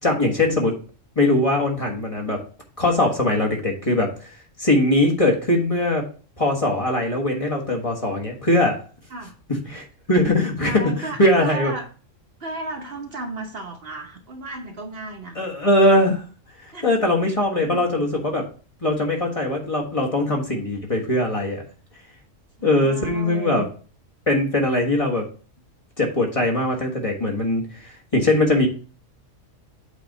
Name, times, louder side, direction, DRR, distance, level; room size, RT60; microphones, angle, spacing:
voice 1, 0.0-0.7 1.1-2.4 2.8-4.3 4.6-6.0 6.4-8.8 9.6-11.7 15.3-16.2 16.8-18.4 18.8-21.6 22.6-23.6 24.3-25.2 26.0-28.7, left 1 dB, 25° left, -1 dB, 1.5 m, -21 dB
voice 2, 10.6-11.9 12.4-15.4 16.7-16.9 17.2-17.8 22.6-23.7, right 2 dB, 50° right, 2 dB, 1.2 m, -34 dB
8.2 x 3.5 x 5.3 m, 0.38 s
omnidirectional pair, 1.4 m